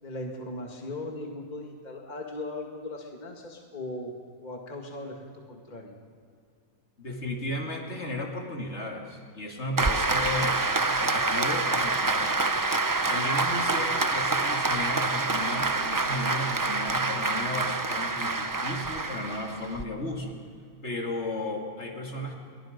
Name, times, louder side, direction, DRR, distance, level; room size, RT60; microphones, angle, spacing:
voice 1, 0.0-4.1 4.4-5.2 5.5-6.0, left 2 dB, 30° left, 1 dB, 2.1 m, -38 dB
voice 2, 7.0-10.6 11.0-12.4 13.1-20.4 20.8-22.3, left 1 dB, 50° left, 1 dB, 2.8 m, -34 dB
Applause, 9.8-19.8, right 3 dB, 25° right, 0.4 m, -27 dB
29.0 x 23.5 x 5.2 m, 2.4 s
omnidirectional pair, 1.5 m